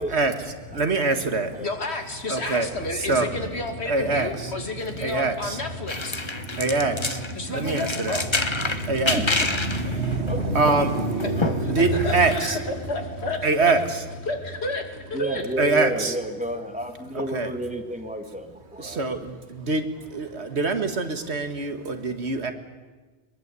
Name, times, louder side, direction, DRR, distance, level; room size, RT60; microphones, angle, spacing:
voice 1, 0.1-1.6 2.3-4.6 4.9-5.7 6.1-12.9 13.4-14.0 15.6-16.2 17.1-17.5 18.8-22.5, right 3 dB, 90° right, 7 dB, 2.1 m, -25 dB
voice 2, 1.6-6.3 7.3-8.3 11.2-13.7 14.3-15.5, left 2 dB, 80° left, 5 dB, 2.8 m, -31 dB
sound 1, 5.9-7.3 7.7-12.4, left 3 dB, 25° left, 1.1 m, -28 dB
voice 3, 11.3-11.6 15.1-19.0, equal, 5° right, 5 dB, 2.0 m, -31 dB
23.0 x 21.5 x 8.4 m, 1.3 s
omnidirectional pair, 1.1 m